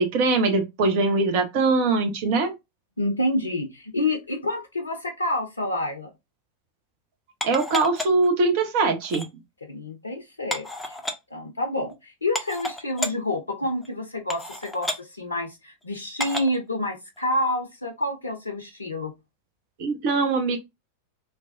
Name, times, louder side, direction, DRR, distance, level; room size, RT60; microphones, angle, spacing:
voice 1, 0.0-2.5 7.4-9.3 19.8-20.6, right 3 dB, 45° right, 0.7 m, -22 dB
voice 2, 3.0-6.1 9.7-11.0 11.3-19.1, left 1 dB, 80° left, 0.5 m, -28 dB
sound 1, 7.4-8.3 9.0-9.3 10.5-11.1 11.9-12.0 12.3-13.1 13.8-13.9 14.3-15.0 16.2-16.6 17.2-17.3, left 1 dB, 5° left, 0.5 m, -31 dB
3.3 x 2.1 x 2.5 m
figure-of-eight pair, 90°, 0 cm